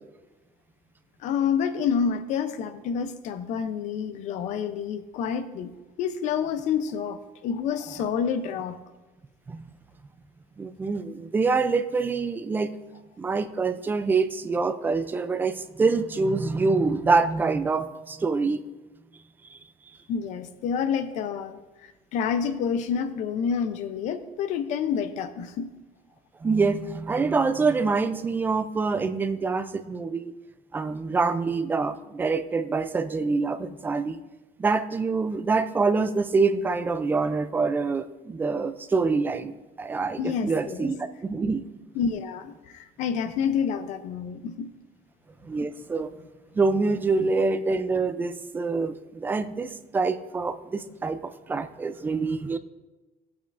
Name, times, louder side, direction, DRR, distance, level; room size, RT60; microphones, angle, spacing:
voice 1, 1.2-5.7 6.0-8.8 20.1-25.7 40.2-40.9 41.9-44.7, left 7 dB, 55° left, 11 dB, 0.5 m, -28 dB
voice 2, 10.6-12.7 13.2-18.6 26.4-30.3 30.7-34.2 34.6-41.6 45.4-46.1 46.6-52.6, right 4 dB, 15° right, 10 dB, 0.3 m, -25 dB
17.0 x 8.5 x 2.5 m, 1.1 s
cardioid pair, 180°, 14 cm